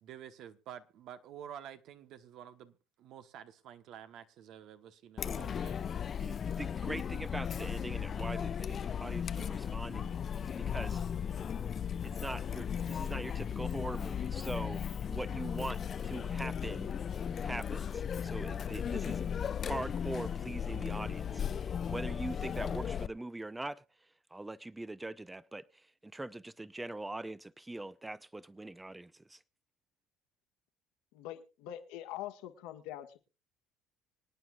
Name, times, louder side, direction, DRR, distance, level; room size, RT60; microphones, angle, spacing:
voice 1, 0.0-5.9, right 9 dB, 65° right, 1.1 m, -50 dB
Chatter, 5.2-23.1, left 8 dB, 45° left, 0.5 m, -36 dB
voice 2, 6.2-11.0 12.0-14.8 15.1-16.9 17.4-19.2 19.6-23.8 24.3-29.4, right 2 dB, 10° right, 0.6 m, -42 dB
voice 3, 31.1-33.2, left 12 dB, 80° left, 1.5 m, -44 dB
25.5 x 9.2 x 2.4 m
supercardioid pair, 75°, 0 cm